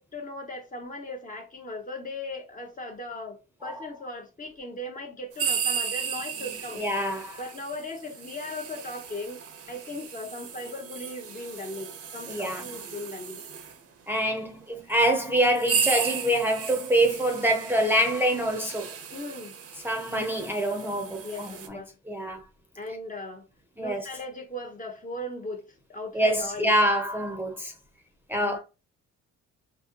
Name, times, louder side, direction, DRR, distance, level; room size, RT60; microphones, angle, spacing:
voice 1, 0.0-6.8 7.2-9.4 9.7-13.4 19.1-19.6 21.2-21.9 22.8-23.5 23.8-26.7 27.2-27.3 28.4-28.6, left 1 dB, 25° left, 0.7 m, -38 dB
sound 1, 5.3-13.8 14.6-14.7 15.3-21.7, right 7 dB, 50° right, 0.7 m, -35 dB
voice 2, 6.8-7.4 12.3-12.6 14.1-19.0 19.8-21.8 22.1-22.4 23.8-24.1 26.1-27.7 28.3-28.6, right 1 dB, 5° right, 0.7 m, -25 dB
3.9 x 2.8 x 2.8 m
cardioid pair, 125°, 30 cm